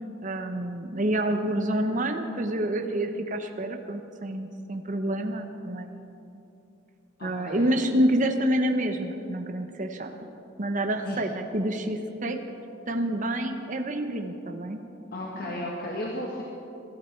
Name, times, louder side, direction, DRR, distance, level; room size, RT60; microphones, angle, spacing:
voice 1, 0.2-6.4 7.2-10.3 10.6-12.4 12.9-14.8 15.4-15.6, right 1 dB, 40° right, 5 dB, 1.0 m, -28 dB
voice 2, 7.2-7.7 11.1-11.2 15.1-16.4, left 1 dB, 50° left, -3 dB, 1.8 m, -34 dB
23.0 x 12.5 x 4.6 m, 2.8 s
head